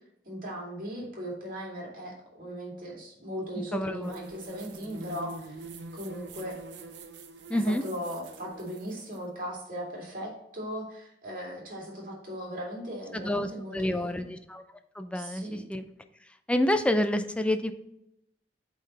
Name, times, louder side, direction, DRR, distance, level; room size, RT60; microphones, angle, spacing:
voice 1, 0.3-6.6 7.5-14.1 15.1-15.6, equal, 50° right, -3 dB, 2.5 m, -38 dB
voice 2, 3.7-4.1 7.5-7.8 13.1-14.6 15.0-15.9 16.5-17.7, left 1 dB, 5° left, 8 dB, 0.5 m, -28 dB
sound 1, 4.0-9.2, right 3 dB, 75° right, 0.7 m, -45 dB
8.3 x 3.9 x 4.1 m, 0.81 s
head